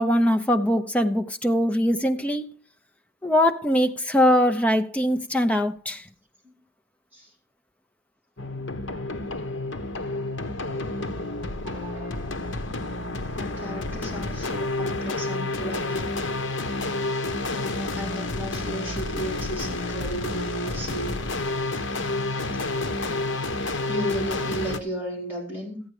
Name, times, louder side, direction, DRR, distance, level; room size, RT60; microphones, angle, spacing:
voice 1, 0.0-2.5 3.2-6.0, equal, 5° left, 0.7 m, -22 dB
sound 1, 8.4-24.8, left 2 dB, 65° left, 1.1 m, -30 dB
voice 2, 11.6-12.4 13.3-16.3 17.5-21.2 23.9-25.8, right 1 dB, 10° right, 3.8 m, -34 dB
14.0 x 8.7 x 4.8 m
head